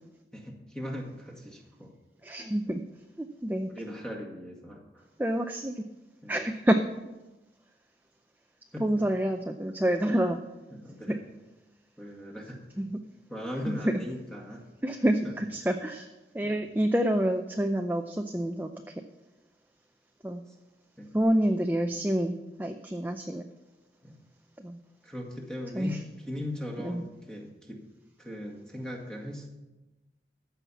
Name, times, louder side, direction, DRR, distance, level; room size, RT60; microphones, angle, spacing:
voice 1, 0.3-1.9 3.7-5.1 6.2-6.4 8.7-9.0 10.7-11.2 12.0-12.6 13.3-14.6 15.2-15.4 16.4-16.6 20.5-20.6 21.0-21.1 24.0-24.2 25.0-27.8 28.2-29.5, left 1 dB, 5° left, 0 dB, 1.9 m, -39 dB
voice 2, 2.2-2.8 3.2-3.7 5.2-5.8 6.3-6.8 8.8-10.4 11.1-11.2 12.8-13.0 13.7-13.9 14.8-16.1 16.3-18.9 20.2-20.4 21.1-23.4 24.6-24.8 25.7-26.0 26.8-27.0, right 1 dB, 10° right, 5 dB, 0.5 m, -28 dB
14.0 x 5.7 x 8.4 m, 1.1 s
head